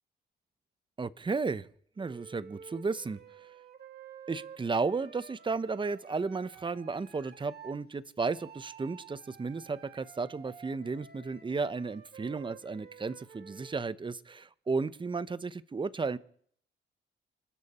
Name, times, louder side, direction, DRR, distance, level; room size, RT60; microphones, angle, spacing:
voice 1, 1.0-1.7 2.0-3.2 4.3-16.2, right 4 dB, 25° right, 15 dB, 0.9 m, -34 dB
Wind instrument woodwind instrument, 2.0-7.8 8.2-13.8, right 8 dB, 50° right, 2.5 m, -52 dB
28.0 x 12.0 x 4.3 m, 0.62 s
cardioid pair, 85°, 20 cm